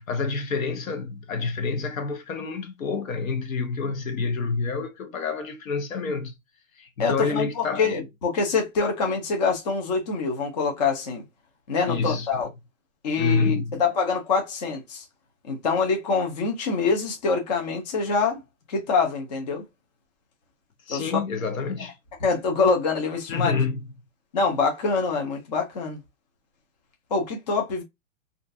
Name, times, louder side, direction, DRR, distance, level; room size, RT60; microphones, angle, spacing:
voice 1, 0.0-6.3 6.8-8.0 11.9-12.3 13.2-13.8 20.9-21.9 23.3-23.9, left 4 dB, 75° left, 0.9 m, -28 dB
voice 2, 7.0-11.2 11.7-12.5 13.0-15.0 15.4-18.4 18.7-19.6 20.9-21.1 22.2-23.5 24.3-26.0 27.1-27.8, left 4 dB, 30° left, 0.6 m, -25 dB
2.5 x 2.3 x 2.4 m
hypercardioid pair, 160°, 41 cm